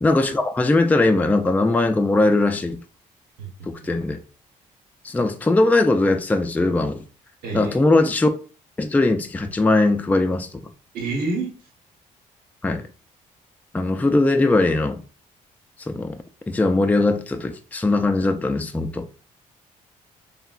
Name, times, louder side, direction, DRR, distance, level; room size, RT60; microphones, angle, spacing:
voice 1, 0.0-2.8 3.7-4.2 5.0-7.0 7.5-8.3 8.8-10.7 12.6-12.8 13.7-15.0 15.9-16.1 16.5-19.2, left 2 dB, 10° left, 0.3 m, -20 dB
voice 2, 3.4-3.9 7.4-8.0 10.9-11.5, right 3 dB, 80° right, 1.0 m, -29 dB
3.5 x 2.1 x 2.3 m
supercardioid pair, 65°, 15 cm